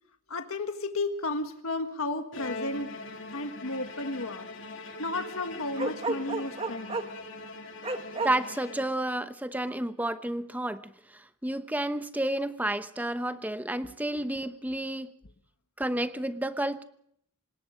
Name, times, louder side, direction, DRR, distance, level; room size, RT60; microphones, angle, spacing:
voice 1, 0.3-2.9 3.3-4.5 5.0-7.0, left 2 dB, 75° left, 7 dB, 1.6 m, -33 dB
Bowed string instrument, 2.3-9.3, left 3 dB, 55° left, 3.1 m, -42 dB
Bark, 5.8-7.2 7.8-8.3, right 3 dB, 25° right, 1.5 m, -31 dB
voice 2, 8.2-15.1 15.8-16.8, right 1 dB, 5° right, 10 dB, 0.9 m, -31 dB
26.0 x 20.0 x 5.1 m, 0.69 s
head